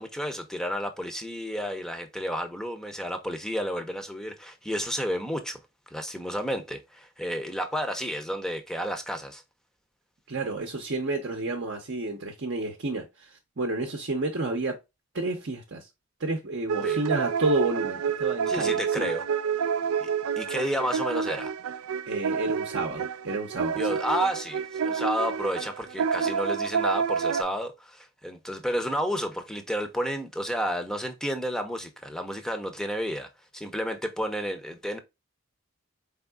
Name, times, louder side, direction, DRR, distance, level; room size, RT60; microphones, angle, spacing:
voice 1, 0.0-5.6 5.9-9.4 16.8-17.0 18.5-19.2 20.0-20.1 20.4-21.5 23.8-35.0, equal, ahead, 0.6 m, -31 dB
voice 2, 10.3-14.8 15.1-15.9 16.2-19.1 22.1-23.9, right 2 dB, 55° right, 0.7 m, -30 dB
sound 1, 16.7-27.4, right 6 dB, 90° right, 0.3 m, -29 dB
4.5 x 3.6 x 2.2 m
head